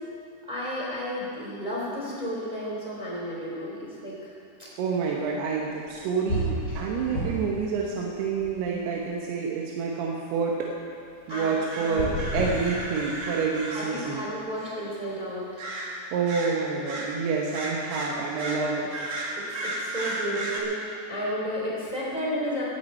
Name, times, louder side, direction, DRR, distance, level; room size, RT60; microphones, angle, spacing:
voice 1, 0.5-4.3 6.7-6.9 11.3-11.5 11.8-12.1 13.7-15.5 19.3-22.6, equal, 10° right, -6 dB, 3.1 m, -32 dB
voice 2, 4.8-10.7 11.3-14.3 16.1-18.9, right 5 dB, 80° right, -2 dB, 3.1 m, -28 dB
sound 1, 5.9-6.0 6.3-7.6 7.9-9.0 11.8-13.4, equal, 25° left, 3.4 m, -31 dB
sound 2, 11.3-14.2 14.6-14.8 15.6-16.0 16.3-17.1 17.5-20.6, right 1 dB, 45° right, 2.1 m, -34 dB
18.0 x 13.5 x 4.4 m, 2.4 s
omnidirectional pair, 4.7 m